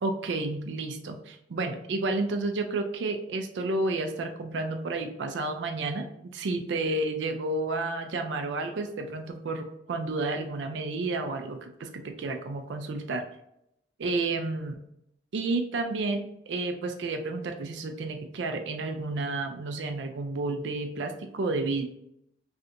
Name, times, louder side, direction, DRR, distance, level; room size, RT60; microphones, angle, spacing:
voice 1, 0.0-13.3 14.0-14.8 15.3-21.8, right 2 dB, 80° right, 4 dB, 0.4 m, -31 dB
3.2 x 2.5 x 2.7 m, 0.78 s
head